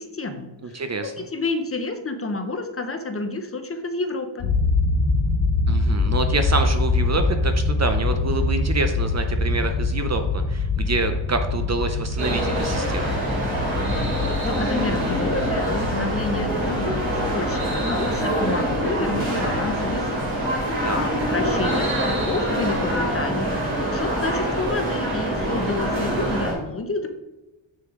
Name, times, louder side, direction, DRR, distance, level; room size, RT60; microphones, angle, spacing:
voice 1, 0.0-4.5 14.2-17.0 17.3-20.3 20.6-27.1, left 3 dB, 30° left, 7 dB, 0.6 m, -30 dB
voice 2, 0.6-1.3 5.7-13.1 20.8-21.0 26.0-26.5, right 3 dB, 35° right, 7 dB, 0.5 m, -27 dB
sound 1, 4.4-18.9, left 3 dB, 80° left, 2.1 m, -25 dB
sound 2, 12.2-26.5, right 1 dB, 65° right, 2.8 m, -25 dB
6.9 x 6.6 x 3.6 m, 1.0 s
wide cardioid pair, 145°, 50 cm